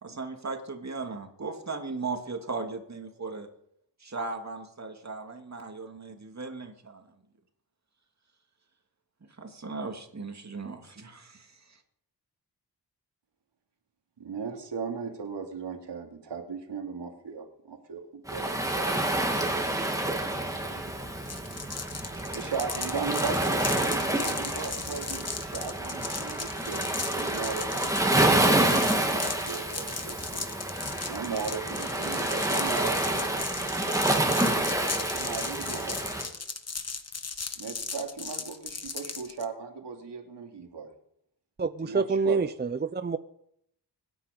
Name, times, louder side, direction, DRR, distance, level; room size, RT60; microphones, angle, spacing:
voice 1, 0.0-3.5 4.0-7.1 9.4-11.8, right 3 dB, 40° right, 4 dB, 2.6 m, -37 dB
voice 2, 14.2-19.5 20.7-21.0 22.2-30.5 31.1-36.3 37.6-40.9 41.8-42.4, right 5 dB, 75° right, 3 dB, 2.8 m, -38 dB
Waves surf, 18.3-36.3, right 1 dB, 10° right, 2.6 m, -28 dB
sound 1, 21.3-39.5, left 4 dB, 35° left, 1.4 m, -37 dB
voice 3, 41.6-43.2, right 4 dB, 25° right, 12 dB, 0.6 m, -27 dB
24.5 x 9.9 x 5.3 m, 0.73 s
wide cardioid pair, 85°, 42 cm